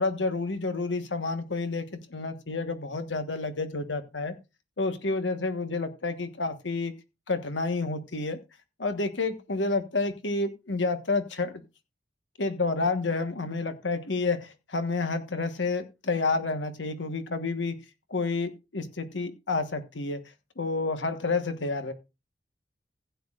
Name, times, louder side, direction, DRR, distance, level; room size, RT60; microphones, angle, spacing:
voice 1, 0.0-4.3 4.8-6.9 7.3-8.4 8.8-11.6 12.4-17.8 18.1-20.2 20.6-21.9, left 3 dB, 90° left, 9 dB, 1.3 m, -29 dB
15.5 x 9.4 x 2.5 m, 0.27 s
head